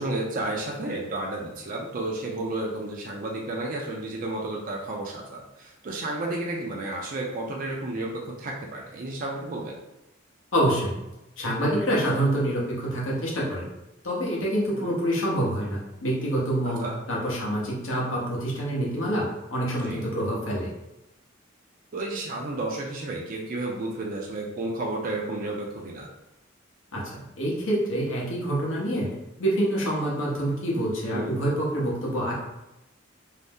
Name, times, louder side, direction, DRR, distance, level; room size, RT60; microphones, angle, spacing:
voice 1, 0.0-9.8 14.7-15.0 16.6-16.9 19.8-20.0 21.9-26.1 31.1-31.4, right 2 dB, 45° right, -1 dB, 0.4 m, -32 dB
voice 2, 10.5-10.9 11.4-13.6 14.0-20.7 26.9-27.1 27.4-29.1 29.4-32.3, right 1 dB, 80° left, -4 dB, 0.8 m, -26 dB
2.6 x 2.0 x 3.4 m, 0.93 s
head